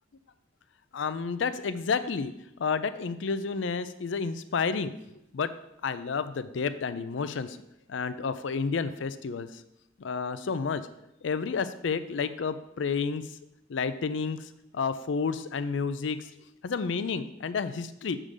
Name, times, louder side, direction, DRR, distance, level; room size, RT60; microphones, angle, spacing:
voice 1, 0.9-2.3 2.6-4.9 5.3-5.5 5.8-7.6 7.9-9.6 10.0-10.8 11.2-13.2 13.7-16.3 16.6-18.2, left 5 dB, 65° left, 12 dB, 0.4 m, -30 dB
6.6 x 3.7 x 6.3 m, 0.83 s
head